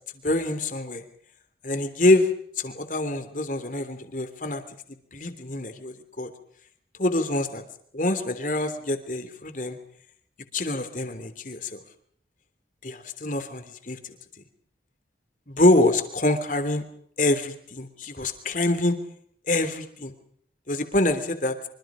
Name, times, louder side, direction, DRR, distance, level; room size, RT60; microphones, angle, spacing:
voice 1, 0.2-1.0 1.6-2.3 2.6-4.6 5.1-6.3 7.0-7.6 7.9-9.8 10.5-11.8 12.8-14.0 15.5-16.8 17.2-18.9 19.5-20.1 20.7-21.5, left 2 dB, 45° left, 8 dB, 3.2 m, -25 dB
26.0 x 25.0 x 5.1 m, 0.64 s
head